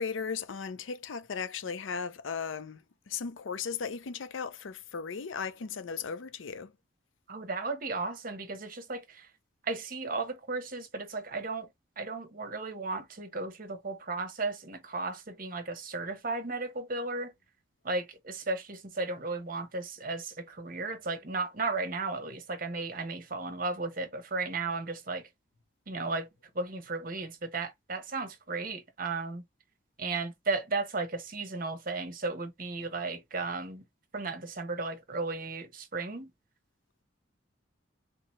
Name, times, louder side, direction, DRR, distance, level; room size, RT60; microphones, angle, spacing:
voice 1, 0.0-6.7, left 6 dB, 85° left, 0.6 m, -36 dB
voice 2, 7.3-9.3 9.6-11.7 12.0-17.3 17.8-25.3 25.9-26.3 26.5-29.4 30.0-33.8 34.1-36.3, right 3 dB, 50° right, 1.0 m, -35 dB
3.8 x 2.8 x 3.0 m
head